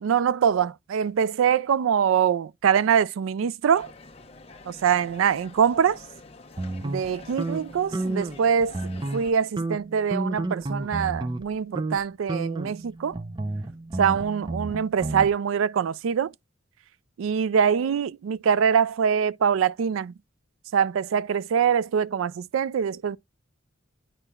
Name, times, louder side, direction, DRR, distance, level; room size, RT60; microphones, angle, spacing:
voice 1, 0.0-3.9 4.7-6.0 6.8-8.8 9.1-13.2 14.0-16.3 17.2-20.1 20.7-23.2, right 7 dB, 80° right, 0.3 m, -24 dB
sound 1, 3.7-9.3, left 3 dB, 30° left, 0.8 m, -47 dB
sound 2, 6.6-8.4 8.7-9.3 9.6-11.5 11.8-12.0 12.3-15.3, right 2 dB, 25° right, 0.6 m, -31 dB
9.9 x 4.3 x 2.3 m
head